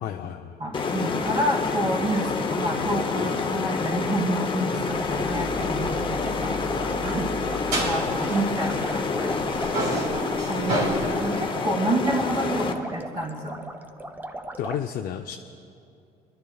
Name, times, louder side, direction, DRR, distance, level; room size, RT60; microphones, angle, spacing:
voice 1, 0.0-0.6 14.6-15.4, left 10 dB, 60° left, 4 dB, 0.5 m, -32 dB
voice 2, 0.6-6.7 7.0-7.3 7.8-9.4 10.0-13.6, right 1 dB, 30° right, -9 dB, 2.6 m, -29 dB
sound 1, 0.7-12.7, left 4 dB, 30° left, 0.8 m, -28 dB
sound 2, 4.9-14.8, right 2 dB, 10° right, 0.6 m, -38 dB
sound 3, 4.9-9.1 9.4-11.5, right 1 dB, 90° right, 3.9 m, -31 dB
30.0 x 12.0 x 2.3 m, 2.5 s
cardioid pair, 110°, 17 cm